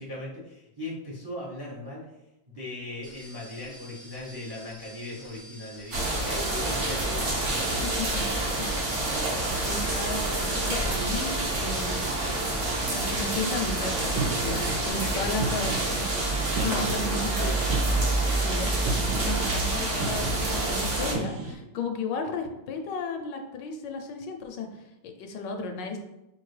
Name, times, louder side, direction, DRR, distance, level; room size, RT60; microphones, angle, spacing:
voice 1, 0.0-2.0 2.5-8.4 15.0-15.4 17.4-17.6, left 2 dB, 35° right, -5 dB, 0.4 m, -38 dB
sound 1, 3.0-14.9, equal, 65° right, 1.5 m, -47 dB
sound 2, 5.9-21.1, right 2 dB, 50° right, 1.1 m, -27 dB
voice 2, 7.8-8.2 9.6-12.1 12.9-16.1 16.6-17.5 18.4-26.0, left 3 dB, 80° left, 5 dB, 1.2 m, -34 dB
sound 3, 8.3-21.5, right 4 dB, 85° right, 1.3 m, -37 dB
5.1 x 2.5 x 3.2 m, 0.91 s
omnidirectional pair, 2.0 m